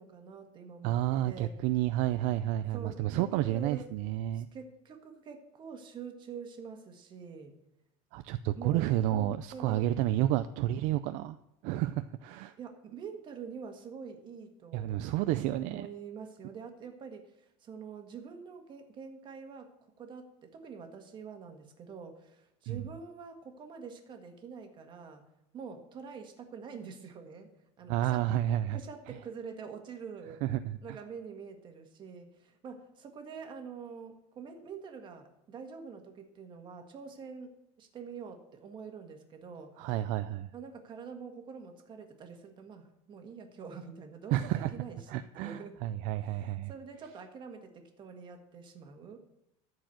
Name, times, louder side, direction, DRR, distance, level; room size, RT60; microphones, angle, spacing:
voice 1, 0.0-1.5 2.7-3.9 4.3-7.6 8.5-10.0 12.6-15.0 15.6-19.7 20.0-25.2 25.5-27.5 27.8-28.2 28.7-30.4 30.8-39.9 40.5-45.8 46.1-49.2, right 6 dB, 30° right, 5 dB, 1.6 m, -46 dB
voice 2, 0.8-4.5 8.1-11.4 11.6-12.5 14.7-15.9 22.7-22.8 27.9-28.8 30.4-31.0 39.8-40.5 44.3-44.7 45.1-46.7, right 13 dB, 60° right, 11 dB, 0.4 m, -30 dB
13.5 x 4.8 x 7.6 m, 0.83 s
supercardioid pair, 145°, 15 cm